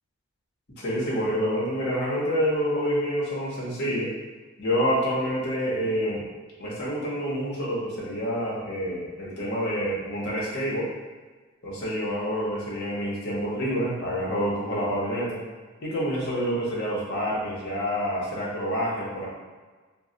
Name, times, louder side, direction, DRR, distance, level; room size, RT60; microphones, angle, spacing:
voice 1, 0.8-4.1 4.6-6.2 6.6-10.9 11.6-15.4 15.8-19.3, equal, 50° left, -5 dB, 0.8 m, -27 dB
2.2 x 2.1 x 3.7 m, 1.4 s
head